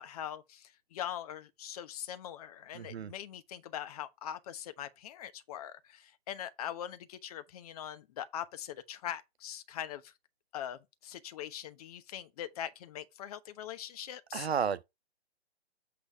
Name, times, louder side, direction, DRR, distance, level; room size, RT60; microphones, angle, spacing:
voice 1, 0.0-10.1 10.5-14.5, left 10 dB, 35° left, 1.0 m, -42 dB
voice 2, 2.7-3.1 14.3-14.8, right 7 dB, 75° right, 0.9 m, -32 dB
8.1 x 3.5 x 5.4 m
hypercardioid pair, 140°, 32 cm